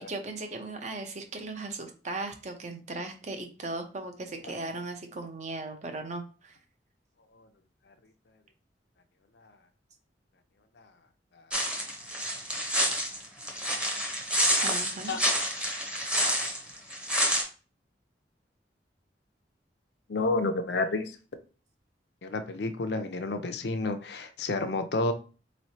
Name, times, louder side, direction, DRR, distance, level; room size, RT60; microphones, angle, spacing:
voice 1, 0.0-6.6 14.6-15.1, right 2 dB, 40° right, 5 dB, 0.6 m, -37 dB
sound 1, 11.5-17.4, equal, 5° right, 0.8 m, -28 dB
voice 2, 20.1-21.2 22.2-25.1, left 3 dB, 70° left, 8 dB, 0.5 m, -30 dB
4.1 x 3.1 x 2.7 m, 0.35 s
head